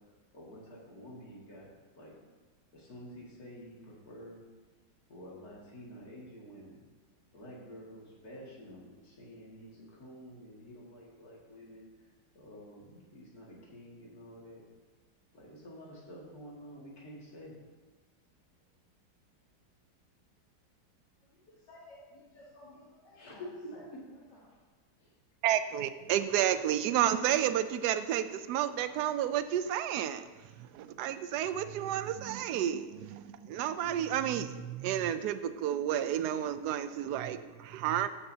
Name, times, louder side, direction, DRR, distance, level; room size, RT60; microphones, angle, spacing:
voice 1, 0.3-1.7 2.0-2.2 2.7-4.4 5.1-6.8 7.3-12.1 12.3-14.6 15.3-17.6 23.2-24.0 25.0-25.1, equal, 60° left, -4 dB, 2.6 m, -49 dB
voice 2, 21.2-23.4 23.7-23.8 24.3-24.6, left 2 dB, 80° left, -7 dB, 2.2 m, -56 dB
voice 3, 25.4-30.3 30.6-38.1, right 11 dB, 75° right, 11 dB, 1.1 m, -31 dB
14.5 x 7.1 x 2.8 m, 1.3 s
omnidirectional pair, 1.8 m